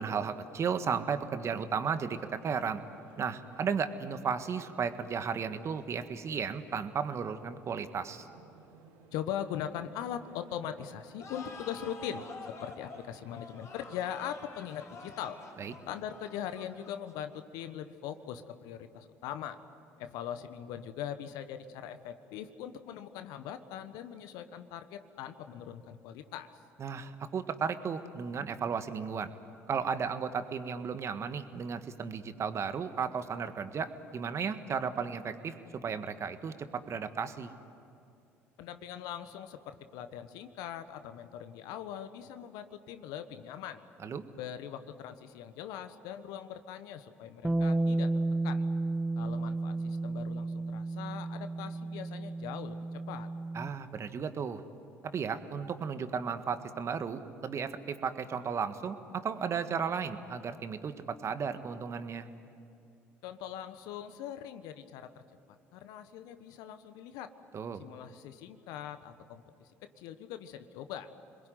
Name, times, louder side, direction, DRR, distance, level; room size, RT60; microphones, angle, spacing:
voice 1, 0.0-2.8 3.2-8.3 15.6-15.7 26.8-29.3 29.7-37.5 44.0-44.2 53.5-54.6 55.1-62.3 67.5-67.8, right 6 dB, 45° right, 10 dB, 1.6 m, -34 dB
sound 1, 1.7-16.7, right 6 dB, 70° right, 2.2 m, -59 dB
voice 2, 9.1-15.4 15.9-19.6 20.0-26.5 38.6-43.8 44.4-48.1 48.4-48.6 49.2-53.3 63.2-65.2 65.7-67.3 67.8-71.1, left 10 dB, 70° left, 10 dB, 1.3 m, -41 dB
sound 2, 11.2-17.6, left 3 dB, 45° left, 4.4 m, -48 dB
Bass guitar, 47.4-53.7, right 2 dB, 10° right, 0.8 m, -32 dB
27.0 x 21.5 x 9.4 m, 2.6 s
hypercardioid pair, 60°, 7 cm